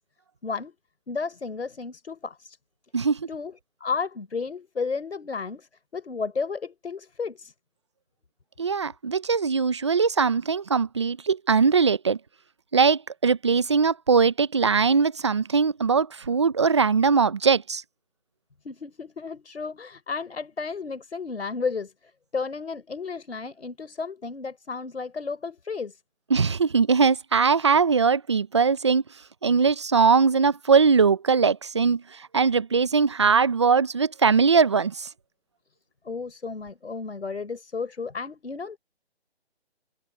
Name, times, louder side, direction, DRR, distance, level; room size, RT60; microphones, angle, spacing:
voice 1, 0.4-0.7 1.1-2.6 3.3-7.5 18.6-21.9 22.3-26.0 36.0-38.8, left 4 dB, 85° left, 4.0 m, -33 dB
voice 2, 2.9-3.3 8.6-12.2 12.7-17.8 26.3-29.0 29.4-32.0 32.3-35.1, right 5 dB, 25° right, 0.7 m, -21 dB
hypercardioid pair, 170°, 32 cm